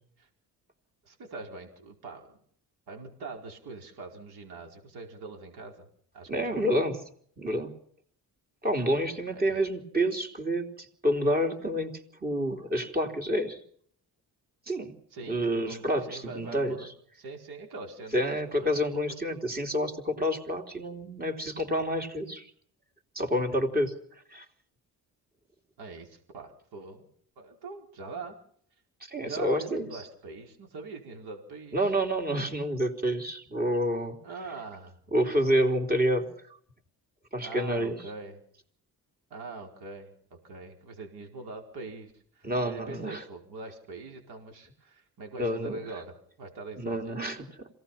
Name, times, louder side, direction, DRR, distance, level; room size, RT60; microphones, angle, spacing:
voice 1, 1.0-2.4 2.9-5.9 6.1-6.8 9.3-9.6 15.1-19.2 25.8-27.1 27.4-28.4 29.2-31.8 34.2-34.9 37.4-38.4 39.3-47.3, right 3 dB, 80° right, 2 dB, 4.9 m, -43 dB
voice 2, 6.3-7.0 7.4-7.7 8.6-11.9 12.2-13.6 14.7-15.0 15.3-16.9 18.1-22.5 23.2-23.9 24.3-24.5 29.0-30.0 31.7-34.2 35.1-36.3 37.3-38.0 42.4-43.2 45.4-45.8 46.8-47.7, equal, 25° right, 4 dB, 3.6 m, -28 dB
27.0 x 18.0 x 5.9 m, 0.62 s
cardioid pair, 110°, 38 cm